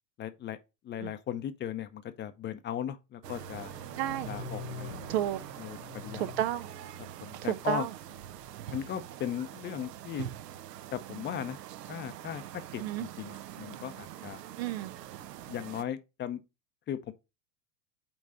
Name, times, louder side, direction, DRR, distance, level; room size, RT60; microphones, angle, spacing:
voice 1, 0.2-0.6 0.8-3.7 4.2-5.0 5.6-6.3 7.2-7.9 8.7-10.3 10.9-11.6 11.9-14.4 15.2-16.4 16.9-17.1, left 10 dB, 20° left, 0.6 m, -37 dB
sound 1, 3.2-15.8, right 12 dB, 75° right, 0.7 m, -44 dB
sound 2, 3.3-8.2, left 5 dB, 60° left, 0.9 m, -46 dB
voice 2, 4.0-4.3 5.1-5.4 6.1-6.7 7.5-7.9 12.8-13.1 14.6-14.9, right 12 dB, 45° right, 0.4 m, -31 dB
8.6 x 3.1 x 3.8 m
hypercardioid pair, 95°, 49 cm